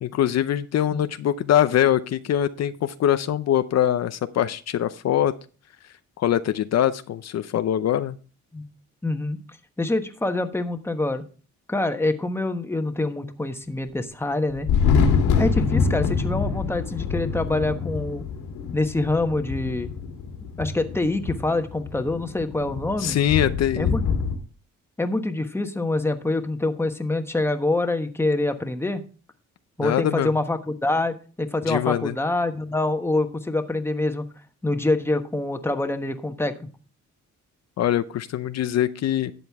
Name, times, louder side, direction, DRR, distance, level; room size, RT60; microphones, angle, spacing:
voice 1, 0.0-5.3 6.2-8.2 23.0-23.9 29.8-30.3 31.7-32.1 37.8-39.3, left 11 dB, 60° left, 12 dB, 0.6 m, -23 dB
voice 2, 9.0-9.4 9.8-11.2 11.7-14.7 15.4-18.2 18.7-19.9 20.6-23.2 23.7-24.0 25.0-29.0 29.8-34.3 34.6-36.7, left 2 dB, 10° left, 7 dB, 1.2 m, -25 dB
Thunder, 14.5-24.4, left 5 dB, 85° left, 2.5 m, -25 dB
12.0 x 7.8 x 3.5 m, 0.37 s
cardioid pair, 90°, 30 cm